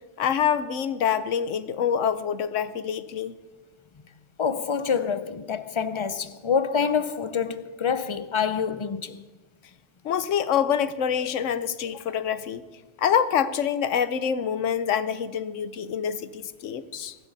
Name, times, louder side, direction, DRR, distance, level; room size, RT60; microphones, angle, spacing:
voice 1, 0.2-3.4 10.0-12.6 13.0-17.2, left 8 dB, 80° left, 1.1 m, -26 dB
voice 2, 4.4-9.2, left 6 dB, 35° left, 0.5 m, -26 dB
22.5 x 12.5 x 4.1 m
omnidirectional pair, 1.3 m